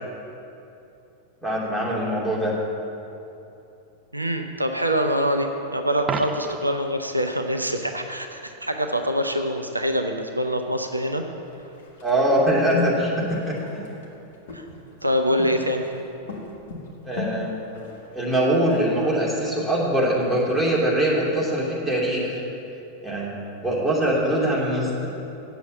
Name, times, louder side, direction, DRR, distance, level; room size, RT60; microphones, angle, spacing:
voice 1, 1.4-2.5 12.0-13.8 17.0-17.6 18.1-22.4 23.0-23.3 23.6-25.1, right 1 dB, 5° left, -6 dB, 2.7 m, -23 dB
voice 2, 4.1-11.2 14.5-14.7 15.0-15.9, equal, 85° right, 5 dB, 0.6 m, -25 dB
Coin (dropping), 6.0-6.8 12.9-13.1, right 5 dB, 25° right, 0.6 m, -31 dB
sound 1, 11.4-20.4, left 2 dB, 60° left, 1.7 m, -37 dB
8.0 x 7.2 x 7.8 m, 2.8 s
figure-of-eight pair, 90°, 0 cm